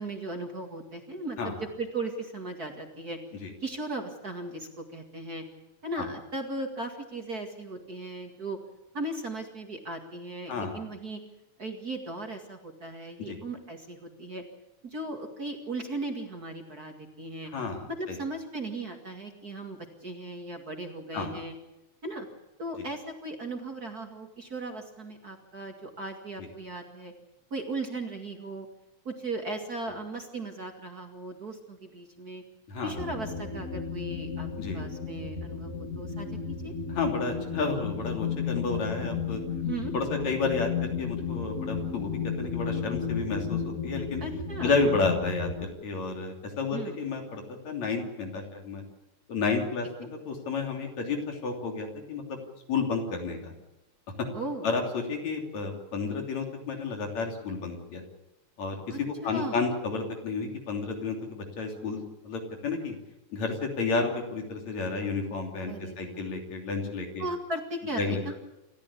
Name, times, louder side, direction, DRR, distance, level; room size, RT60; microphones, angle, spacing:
voice 1, 0.0-3.2 3.6-5.4 5.8-8.6 8.9-11.2 11.6-14.4 14.8-17.5 18.0-21.5 22.0-22.3 22.6-27.1 27.5-28.7 29.0-32.4 32.8-34.5 34.7-36.7 39.6-39.9 44.2-44.7 46.7-47.0 50.0-50.1 54.3-54.7 58.9-59.6 65.7-66.3 67.2-68.4, right 2 dB, 35° right, 4 dB, 2.3 m, -37 dB
voice 2, 10.5-10.8 13.3-13.4 17.5-18.2 21.1-21.4 26.4-26.5 32.7-32.9 34.6-34.8 36.9-39.4 39.9-42.1 42.4-44.2 44.6-48.8 49.3-52.4 52.7-53.5 54.6-58.0 58.6-63.0 63.3-67.2 68.0-68.2, left 4 dB, 65° left, 3 dB, 4.4 m, -31 dB
sound 1, 32.9-45.6, left 6 dB, 30° left, 2.7 m, -33 dB
28.0 x 14.0 x 8.5 m, 0.99 s
omnidirectional pair, 3.4 m